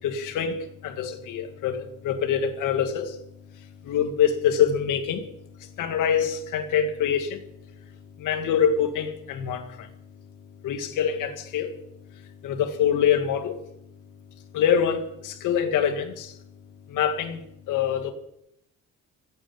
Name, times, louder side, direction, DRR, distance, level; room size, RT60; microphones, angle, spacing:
voice 1, 0.0-3.2 3.8-5.3 5.8-7.4 8.2-9.9 10.6-11.7 12.4-13.6 14.5-16.4 16.9-18.1, left 8 dB, 90° left, 2.1 m, -25 dB
15.0 x 9.0 x 8.9 m
cardioid pair, 90°, 30 cm